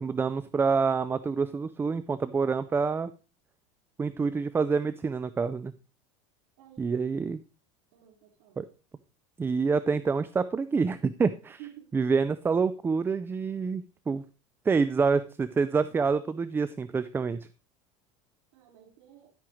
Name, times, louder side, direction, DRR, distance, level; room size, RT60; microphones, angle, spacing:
voice 1, 0.0-3.1 4.0-5.7 6.8-7.4 8.6-8.7 9.4-11.6 11.9-14.2 14.7-17.5, right 5 dB, 15° right, 14 dB, 0.3 m, -27 dB
voice 2, 6.6-7.0 7.9-8.6 11.6-11.9 18.5-19.3, right 13 dB, 75° right, 3 dB, 2.1 m, -51 dB
11.5 x 8.4 x 3.0 m, 0.33 s
supercardioid pair, 125°, 17 cm